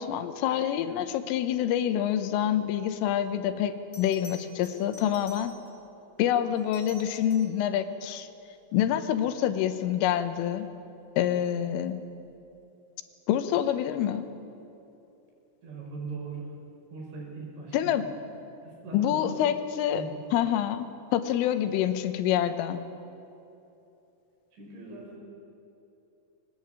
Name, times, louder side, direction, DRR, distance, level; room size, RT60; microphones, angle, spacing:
voice 1, 0.0-5.5 6.2-8.3 8.7-10.7 11.2-12.0 13.3-14.3 17.7-18.1 18.9-20.0 20.3-22.8, left 10 dB, 85° left, 9 dB, 3.5 m, -27 dB
Bell, 3.9-5.9 6.6-7.6 10.3-10.6, left 1 dB, 30° left, 5.5 m, -50 dB
voice 2, 15.6-16.5 16.9-17.9 18.6-19.4 19.9-20.2 24.5-25.2, right 4 dB, 65° right, -1 dB, 7.3 m, -40 dB
23.5 x 19.0 x 8.9 m, 2.9 s
omnidirectional pair, 5.9 m